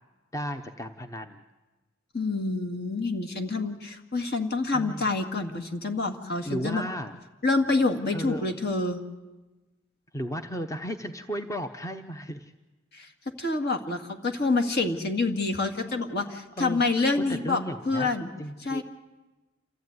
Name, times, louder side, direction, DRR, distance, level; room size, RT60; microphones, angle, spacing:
voice 1, 0.3-1.4 4.7-5.1 6.4-7.2 8.1-8.6 10.1-12.5 16.2-16.8 17.1-18.1 18.4-18.8, equal, 15° left, 7 dB, 0.8 m, -34 dB
voice 2, 2.1-6.8 7.4-9.0 12.9-13.1 13.4-17.6 17.9-18.3 18.6-18.8, left 3 dB, 55° left, 5 dB, 2.1 m, -27 dB
28.0 x 14.5 x 9.5 m, 1.2 s
head